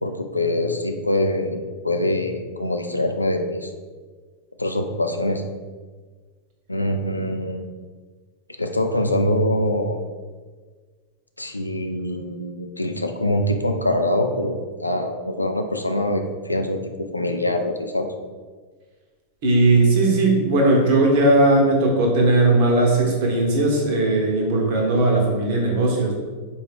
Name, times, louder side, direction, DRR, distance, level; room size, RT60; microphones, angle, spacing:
voice 1, 0.0-3.7 4.6-5.4 6.7-7.6 8.6-10.0 11.4-16.8 17.1-18.1, left 1 dB, 85° left, 5 dB, 0.3 m, -24 dB
voice 2, 19.4-26.1, right 2 dB, 45° right, -1 dB, 1.0 m, -18 dB
4.4 x 2.4 x 3.3 m, 1.5 s
figure-of-eight pair, 90°, 0 cm